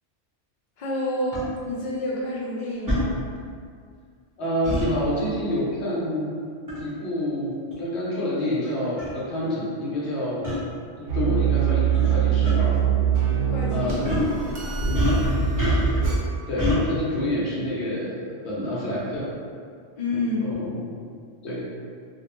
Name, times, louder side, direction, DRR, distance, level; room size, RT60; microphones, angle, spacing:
voice 1, 0.8-3.2 13.5-14.0 20.0-20.7, left 2 dB, 50° left, -7 dB, 0.6 m, -28 dB
sound 1, 1.3-1.4 2.9-3.0 4.6-4.9 6.7-6.9 7.7-7.8 8.6-8.7 9.0-9.1 10.4-10.6 11.9-12.1 12.4-12.5 14.0-14.3 14.9-16.1 16.6-16.8, left 1 dB, 20° right, 0.7 m, -25 dB
voice 2, 4.4-6.3 6.8-10.5 11.0-12.8 13.7-14.1 14.6-14.8 16.5-19.3 20.1-20.9 21.4-21.7, left 1 dB, 70° left, -6 dB, 0.9 m, -28 dB
sound 2, 11.1-16.2, right 7 dB, 70° right, 0.9 m, -23 dB
2.5 x 2.0 x 2.9 m, 2.1 s
omnidirectional pair, 1.2 m